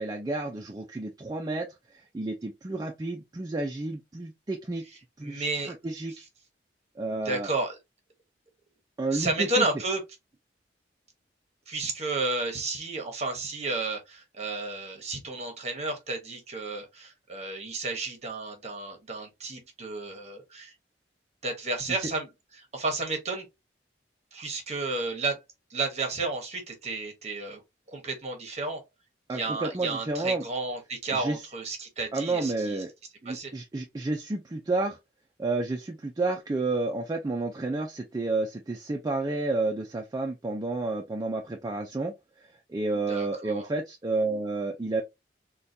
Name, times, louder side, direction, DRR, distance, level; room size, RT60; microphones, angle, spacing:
voice 1, 0.0-1.7 1.9-4.8 5.2-5.5 5.8-6.3 7.0-7.5 9.0-9.7 22.0-22.1 29.3-30.4 31.1-31.4 32.1-32.9 33.2-35.0 35.4-42.1 42.4-45.0, right 2 dB, 20° right, 0.4 m, -30 dB
voice 2, 5.2-5.7 7.1-7.8 9.1-10.0 11.7-20.7 21.4-22.3 22.5-23.5 24.3-25.4 25.7-27.6 27.9-28.8 29.3-32.8 33.2-33.5 43.1-43.7, right 3 dB, 35° right, 1.0 m, -32 dB
3.8 x 2.2 x 2.6 m
head